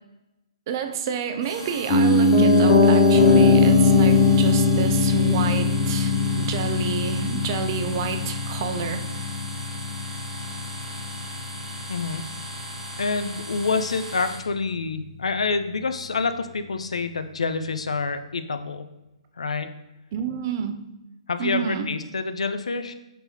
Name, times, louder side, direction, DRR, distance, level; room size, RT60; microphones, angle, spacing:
voice 1, 0.7-9.0 20.1-20.8 21.4-21.9, right 7 dB, 35° right, 7 dB, 0.3 m, -29 dB
sound 1, 1.4-14.4, right 1 dB, 15° right, 1.0 m, -38 dB
Piano, 1.9-11.9 12.2-12.3, left 3 dB, 30° left, 0.7 m, -20 dB
voice 2, 11.9-12.2 13.0-18.9 19.4-19.7 21.3-22.9, left 4 dB, 70° left, 9 dB, 0.3 m, -27 dB
4.0 x 3.5 x 2.8 m, 0.94 s
figure-of-eight pair, 130°, 3 cm